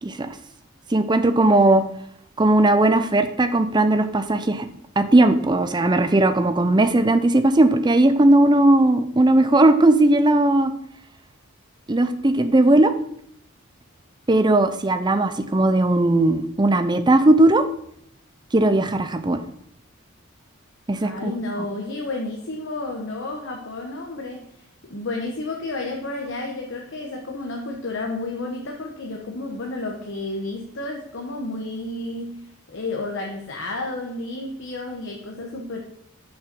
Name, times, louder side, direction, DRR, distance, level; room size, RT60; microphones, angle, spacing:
voice 1, 0.0-0.3 0.9-1.8 2.4-4.7 5.0-10.7 11.9-12.9 14.3-17.6 18.5-19.4 20.9-21.3, right 2 dB, 20° right, 10 dB, 0.6 m, -17 dB
voice 2, 20.9-35.8, left 2 dB, 60° left, 1 dB, 1.1 m, -31 dB
6.6 x 5.7 x 6.1 m, 0.70 s
head